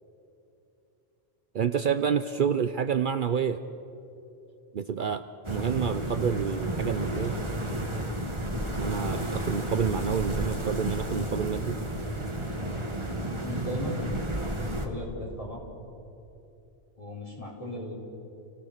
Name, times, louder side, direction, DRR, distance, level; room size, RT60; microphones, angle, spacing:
voice 1, 1.5-3.6 4.7-7.4 7.9-8.3 8.8-11.8, right 7 dB, 55° right, 10 dB, 0.8 m, -29 dB
sound 1, 5.4-14.9, right 1 dB, 30° right, 1.7 m, -32 dB
voice 2, 13.4-14.0 14.6-15.6 17.0-17.9, left 1 dB, 35° left, -3 dB, 4.5 m, -36 dB
29.5 x 16.5 x 6.6 m, 2.8 s
omnidirectional pair, 1.1 m